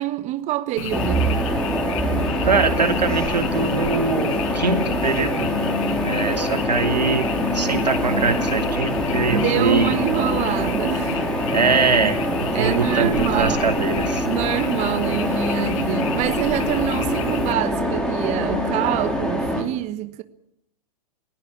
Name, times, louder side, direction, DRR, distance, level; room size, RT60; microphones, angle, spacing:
voice 1, 0.0-1.4 9.3-11.3 12.5-13.7 14.2-20.2, right 14 dB, 35° right, 1.3 m, -26 dB
Frog, 0.8-17.5, left 10 dB, 55° left, 1.8 m, -32 dB
sound 1, 0.9-19.6, equal, 5° left, 4.8 m, -24 dB
voice 2, 2.4-5.5 6.0-10.0 11.5-14.3, right 4 dB, 85° right, 2.6 m, -22 dB
19.5 x 18.5 x 8.6 m
figure-of-eight pair, 105°, 21 cm